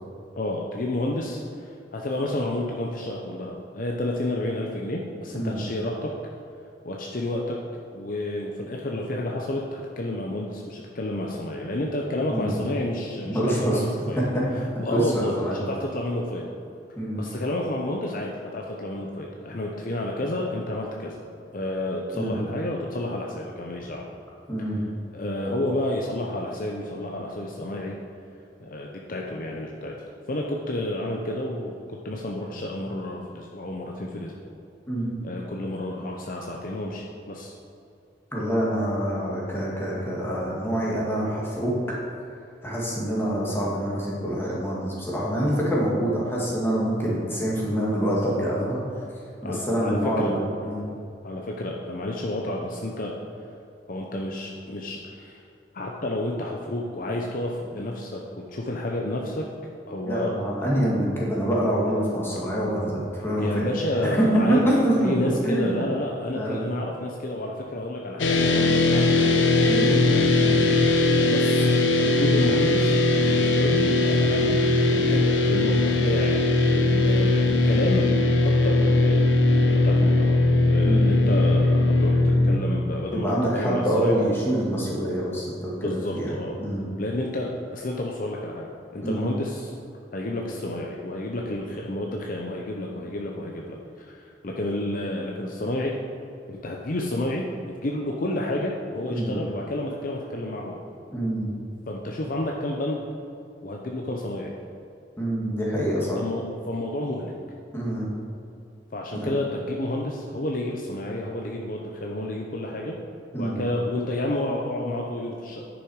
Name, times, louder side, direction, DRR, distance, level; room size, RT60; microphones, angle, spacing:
voice 1, 0.4-6.1 6.8-7.6 7.9-14.2 14.5-16.5 17.1-21.2 21.5-24.0 25.1-27.9 28.6-29.9 30.3-34.4 35.2-37.6 49.4-50.4 51.2-53.1 53.9-55.4 55.7-59.5 59.9-60.7 63.4-70.6 71.3-71.7 72.0-73.0 73.2-76.3 76.7-78.1 78.4-79.2 79.5-80.4 80.6-84.1 85.8-86.6 87.0-89.7 90.1-95.9 96.5-100.8 101.9-103.0 103.6-104.5 106.2-107.3 108.9-113.0 113.3-115.6, left 1 dB, 50° left, -1 dB, 0.7 m, -30 dB
voice 2, 12.3-12.6 13.2-13.8 14.2-14.5 14.9-15.5 17.0-17.2 22.1-22.4 24.5-24.8 34.9-35.2 38.3-42.0 42.6-48.8 49.4-50.9 60.0-63.7 64.0-65.1 65.4-65.8 66.3-66.7 69.6-70.0 70.4-70.7 80.8-81.4 83.1-86.9 89.0-89.3 99.1-99.4 101.1-101.5 105.2-106.2 107.7-108.1 109.1-109.3 113.3-113.6, right 1 dB, 15° left, -5 dB, 2.1 m, -26 dB
sound 1, 68.2-82.6, left 2 dB, 85° left, 0.8 m, -20 dB
10.0 x 6.3 x 4.8 m, 2.7 s
head